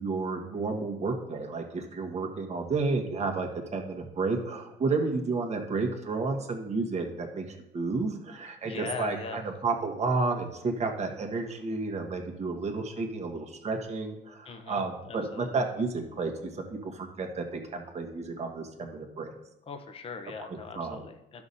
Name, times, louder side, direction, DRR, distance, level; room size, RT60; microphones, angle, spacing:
voice 1, 0.0-19.3 20.7-21.0, right 3 dB, 40° right, 3 dB, 1.5 m, -31 dB
voice 2, 8.6-9.4 14.4-15.6 19.7-21.4, left 5 dB, 35° left, 7 dB, 0.8 m, -40 dB
12.5 x 6.0 x 2.8 m, 0.86 s
cardioid pair, 110°, 17 cm